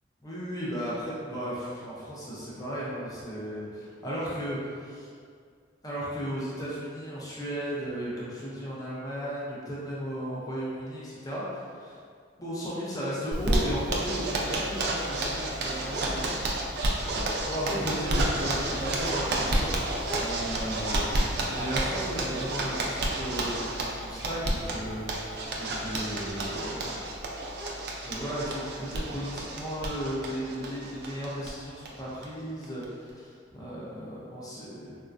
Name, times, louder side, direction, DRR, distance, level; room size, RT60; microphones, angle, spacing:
voice 1, 0.2-5.1 5.8-12.0 12.4-16.2 17.4-27.0 28.0-35.0, equal, 20° left, -8 dB, 0.5 m, -35 dB
Zipper (clothing), 13.3-31.5 31.8-31.9 32.2-32.3 32.6-33.1, right 1 dB, 60° right, 0.4 m, -30 dB
3.9 x 2.2 x 2.4 m, 2.1 s
head